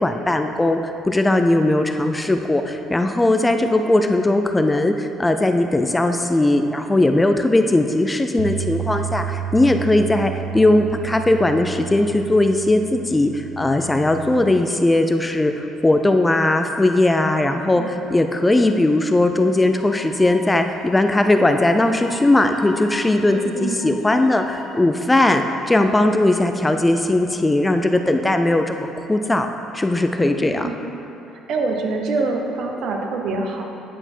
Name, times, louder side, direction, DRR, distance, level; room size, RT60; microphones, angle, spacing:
voice 1, 0.0-29.5 29.7-30.7, left 2 dB, 15° left, 6 dB, 0.3 m, -19 dB
Bass guitar, 8.4-14.6, right 10 dB, 80° right, 0.4 m, -31 dB
voice 2, 17.4-17.9 23.3-23.8 30.2-30.8 31.5-33.6, right 3 dB, 65° right, 2 dB, 0.8 m, -26 dB
Wind instrument woodwind instrument, 19.7-24.9, left 2 dB, 55° left, 0.8 m, -41 dB
8.9 x 4.3 x 4.4 m, 2.9 s
cardioid pair, 105°, 0 cm